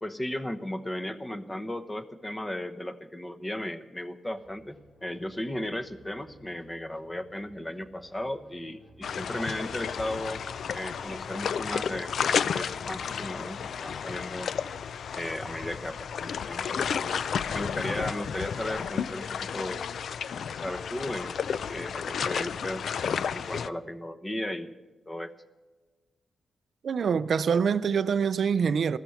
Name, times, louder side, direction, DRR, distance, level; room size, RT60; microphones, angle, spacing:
voice 1, 0.0-10.4 10.7-14.5 15.1-17.1 17.5-19.8 20.1-20.2 20.5-22.9 23.3-24.8 25.1-25.3, left 1 dB, 15° left, 0.9 m, -36 dB
sound 1, 4.3-14.4 15.4-15.9 16.7-17.2 17.8-18.2, right 1 dB, 50° left, 4.1 m, -58 dB
sound 2, 9.0-23.7, left 7 dB, 70° left, 0.4 m, -32 dB
voice 2, 26.8-29.0, right 6 dB, 60° right, 0.4 m, -25 dB
15.5 x 13.0 x 5.7 m
cardioid pair, 110°, 0 cm